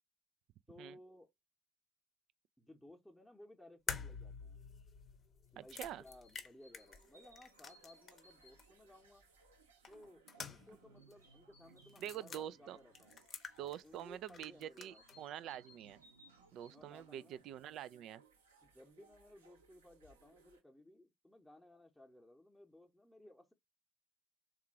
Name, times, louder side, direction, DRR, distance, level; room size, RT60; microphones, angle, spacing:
voice 1, 0.7-1.3 2.6-4.6 5.5-9.2 9.9-13.2 13.6-15.3 16.6-17.4 18.6-23.5, left 1 dB, 5° left, 0.8 m, -60 dB
sound 1, 3.9-8.3 8.6-8.7 9.8-10.8 11.1-11.2 11.9-12.4 12.9-14.0 14.3-15.2, left 6 dB, 35° left, 0.7 m, -48 dB
voice 2, 5.6-6.0 12.0-12.8 13.6-16.0 16.5-18.2, right 11 dB, 50° right, 0.3 m, -46 dB
sound 2, 5.6-20.6, right 4 dB, 75° right, 0.7 m, -67 dB
sound 3, 6.1-9.2 11.0-12.6 14.9-17.3 17.7-17.8, equal, 90° right, 1.0 m, -66 dB
3.6 x 2.4 x 4.6 m
figure-of-eight pair, 55°, 0 cm